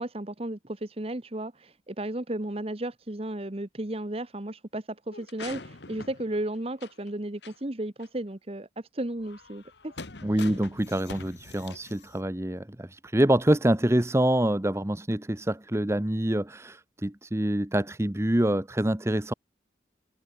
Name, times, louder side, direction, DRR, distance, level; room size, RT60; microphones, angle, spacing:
voice 1, 0.0-9.9 10.3-10.5, right 1 dB, 30° right, 1.1 m, -34 dB
sound 1, 5.1-7.1 7.4-7.6 8.0-8.1 9.2-12.2, left 3 dB, 70° left, 1.8 m, -44 dB
voice 2, 10.2-19.3, right 1 dB, 15° right, 0.8 m, -26 dB
head